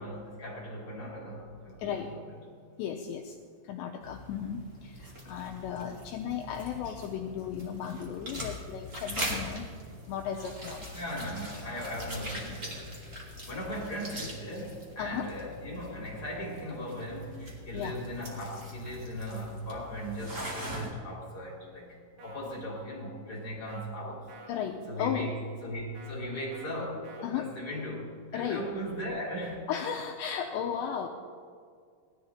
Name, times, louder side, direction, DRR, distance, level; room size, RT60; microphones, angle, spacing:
voice 1, 0.0-2.2 10.9-12.9 13.5-24.3 24.9-25.3 25.6-29.7, equal, 25° left, -4 dB, 2.7 m, -38 dB
voice 2, 1.8-2.1 2.8-3.4 3.6-9.7 10.1-10.9 15.0-15.3 17.7-18.0 24.5-25.3 27.2-27.5 28.3-28.6 29.7-31.1, left 8 dB, 90° left, 3 dB, 2.5 m, -35 dB
sound 1, 4.0-20.9, equal, 35° right, 1.1 m, -42 dB
sound 2, 22.2-22.4 23.7-23.9 24.3-24.6 25.9-26.1 26.5-26.7 27.0-27.3, right 3 dB, 60° right, 2.1 m, -51 dB
18.5 x 13.0 x 4.3 m, 2.1 s
omnidirectional pair, 5.9 m